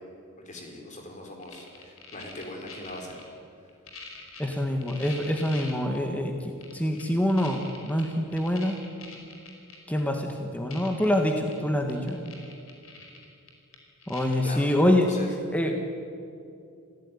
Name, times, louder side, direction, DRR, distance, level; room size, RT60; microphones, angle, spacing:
voice 1, 0.4-3.2 14.4-15.3, left 1 dB, 35° left, 2 dB, 4.7 m, -40 dB
sound 1, 1.4-3.2 3.7-6.0 6.6-10.0 10.3-10.4 10.7-11.5 11.8-14.5 15.1-15.2, left 4 dB, 75° left, 5.1 m, -44 dB
voice 2, 4.4-8.8 9.9-12.3 14.1-15.1 15.5-15.7, left 1 dB, 5° left, 3 dB, 1.6 m, -26 dB
27.5 x 16.5 x 9.8 m, 2.6 s
head